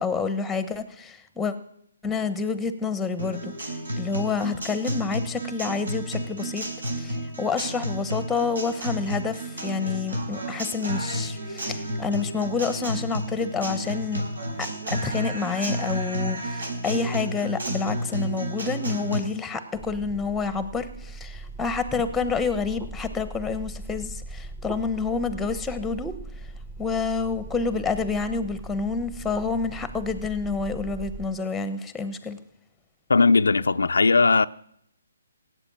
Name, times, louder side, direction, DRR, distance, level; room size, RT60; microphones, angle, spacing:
voice 1, 0.0-1.5 2.0-3.5 4.0-6.6 6.9-14.2 14.6-26.1 26.8-32.4, left 5 dB, 5° left, 1.0 m, -28 dB
Guitar, 3.2-19.2, right 1 dB, 80° right, 5.1 m, -31 dB
sound 1, 19.7-31.3, right 2 dB, 15° right, 1.2 m, -40 dB
voice 2, 33.1-34.5, left 4 dB, 80° left, 0.5 m, -18 dB
17.0 x 8.1 x 8.8 m
hypercardioid pair, 150°, 0 cm